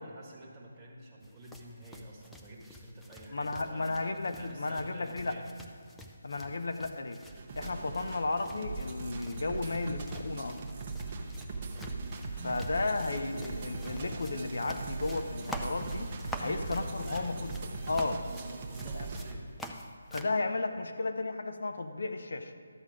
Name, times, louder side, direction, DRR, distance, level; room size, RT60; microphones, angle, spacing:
voice 1, 0.0-4.0 4.3-5.5 6.4-6.6 11.5-11.8 16.4-17.4 18.3-19.5, right 1 dB, 10° right, -6 dB, 1.6 m, -50 dB
sound 1, 1.2-20.4, left 1 dB, 5° left, 0.4 m, -48 dB
voice 2, 3.3-5.4 6.2-7.2 7.6-10.6 12.3-16.1 16.4-17.5 17.9-18.3 18.9-19.1 20.1-22.5, left 3 dB, 65° left, 7 dB, 0.8 m, -34 dB
sound 2, 7.3-19.3, right 3 dB, 30° right, 0.9 m, -39 dB
12.5 x 7.7 x 4.9 m, 2.4 s
figure-of-eight pair, 165°, 0 cm